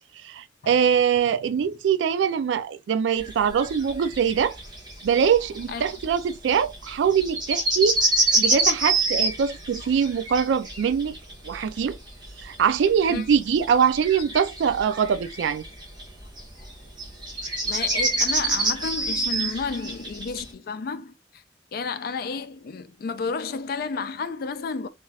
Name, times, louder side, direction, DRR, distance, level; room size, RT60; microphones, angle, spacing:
voice 1, 0.2-4.6 5.0-8.0 8.3-11.2 11.4-12.0 12.4-15.6, right 7 dB, 90° right, 0.3 m, -23 dB
sound 1, 3.2-20.4, right 2 dB, 25° right, 0.6 m, -27 dB
voice 2, 17.6-21.1 21.7-24.9, left 4 dB, 55° left, 0.4 m, -31 dB
2.5 x 2.3 x 3.2 m
head